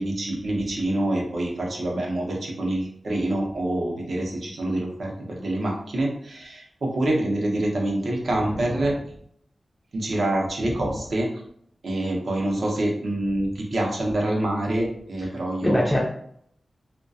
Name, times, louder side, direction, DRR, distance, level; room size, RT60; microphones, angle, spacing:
voice 1, 0.0-9.0 9.9-11.3 11.8-15.9, right 1 dB, 70° right, -1 dB, 0.6 m, -26 dB
voice 2, 8.3-8.7 10.6-11.0 15.6-16.0, equal, 10° left, -3 dB, 0.3 m, -25 dB
2.3 x 2.1 x 2.6 m, 0.68 s
wide cardioid pair, 115°, 0 cm